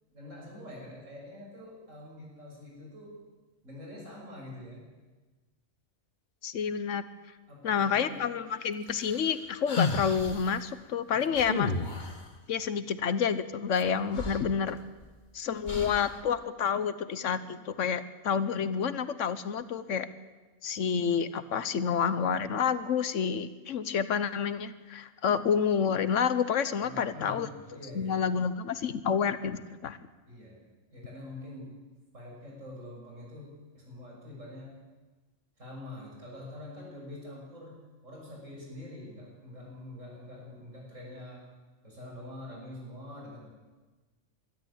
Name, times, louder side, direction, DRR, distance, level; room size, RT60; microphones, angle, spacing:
voice 1, 0.1-3.1 3.6-4.9 7.5-8.3 11.1-11.4 26.8-28.3 30.3-30.6 30.9-31.7 32.1-34.7 35.6-37.8 38.0-41.4 41.8-43.5, left 1 dB, 80° right, -2 dB, 6.9 m, -45 dB
voice 2, 6.4-7.0 7.6-11.7 12.5-14.8 15.3-20.1 20.6-27.5 27.9-30.0, left 7 dB, 80° left, 13 dB, 1.3 m, -29 dB
sound 1, 8.9-10.5 11.4-12.3 13.8-13.9 14.1-15.1 15.7-16.2, left 3 dB, 40° left, 1.7 m, -33 dB
23.0 x 13.0 x 8.6 m, 1.2 s
omnidirectional pair, 1.3 m